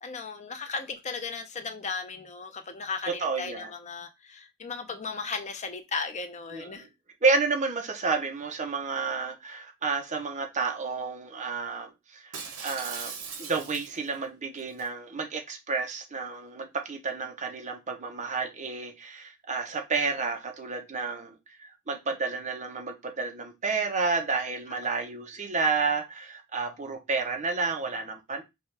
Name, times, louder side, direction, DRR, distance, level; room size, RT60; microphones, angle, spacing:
voice 1, 0.0-6.9 24.8-24.9, left 4 dB, 35° left, 0.6 m, -36 dB
voice 2, 3.2-3.7 6.5-6.9 7.2-12.3 12.6-13.1 13.4-28.4, right 4 dB, 35° right, 0.8 m, -30 dB
Shatter, 12.3-14.1 14.6-14.9, right 5 dB, 75° right, 1.1 m, -39 dB
4.5 x 2.4 x 3.3 m
head